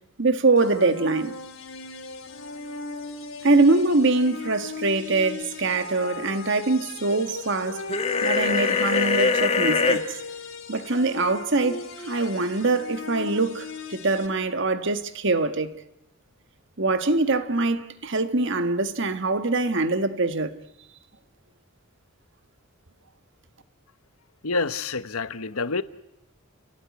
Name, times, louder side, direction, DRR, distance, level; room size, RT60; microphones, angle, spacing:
voice 1, 0.2-1.4 3.4-7.9 8.2-10.0 10.7-15.7 16.8-20.6, right 3 dB, 55° right, 1.5 m, -23 dB
sound 1, 0.6-14.3, left 4 dB, 65° left, 3.3 m, -38 dB
sound 2, 7.9-10.0, left 4 dB, 25° left, 1.4 m, -22 dB
voice 2, 24.4-25.8, left 3 dB, 85° left, 1.1 m, -27 dB
29.5 x 17.5 x 9.6 m
head